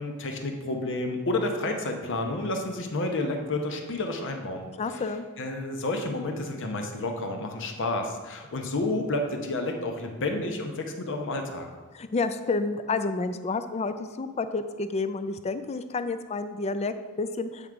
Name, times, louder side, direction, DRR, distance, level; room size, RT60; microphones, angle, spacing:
voice 1, 0.0-5.0 5.4-11.7, left 2 dB, 60° left, 4 dB, 0.8 m, -30 dB
voice 2, 4.8-5.2 11.9-17.7, left 3 dB, 30° left, 10 dB, 0.3 m, -30 dB
7.8 x 3.7 x 4.6 m, 1.3 s
head